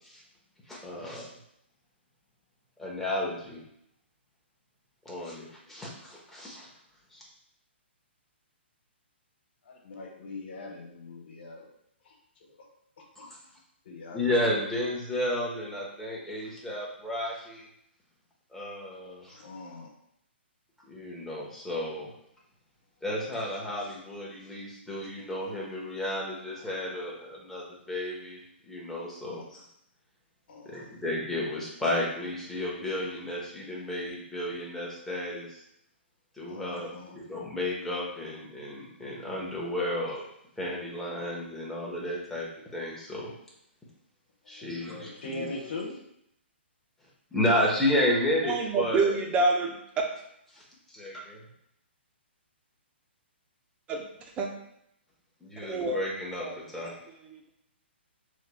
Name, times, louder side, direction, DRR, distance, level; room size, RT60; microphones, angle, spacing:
voice 1, 0.7-1.3 2.8-3.6 5.0-6.7 7.1-7.2 14.1-17.6 18.5-19.4 20.9-22.1 23.0-28.4 28.7-29.6 30.6-35.5 36.4-40.2 40.6-42.5 42.7-43.3 44.5-45.5 47.3-49.1 50.9-51.4 55.4-56.9, left 1 dB, 5° left, -5 dB, 1.0 m, -32 dB
voice 2, 9.7-11.6 12.0-12.1 13.8-14.6 19.4-19.9 29.3-29.5 30.5-30.9 36.5-37.2 44.5-45.9, left 2 dB, 60° left, 0 dB, 1.2 m, -41 dB
voice 3, 48.5-50.0 53.9-54.0 54.4-54.5 55.6-56.0 56.4-56.8 57.2-57.5, right 3 dB, 20° right, 2 dB, 0.6 m, -28 dB
5.6 x 3.2 x 2.3 m, 0.75 s
hypercardioid pair, 140°, 6 cm